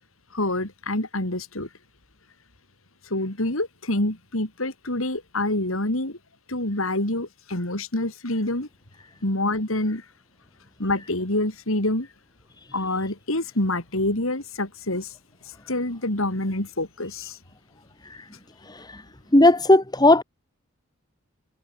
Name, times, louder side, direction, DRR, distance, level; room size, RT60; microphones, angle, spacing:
voice 1, 0.3-1.7 3.1-6.2 6.5-8.7 9.2-10.0 10.8-12.1 12.7-15.1 15.7-17.4, left 1 dB, 85° left, 4.9 m, -26 dB
voice 2, 18.6-19.0 19.3-20.2, left 1 dB, 20° left, 2.0 m, -17 dB
head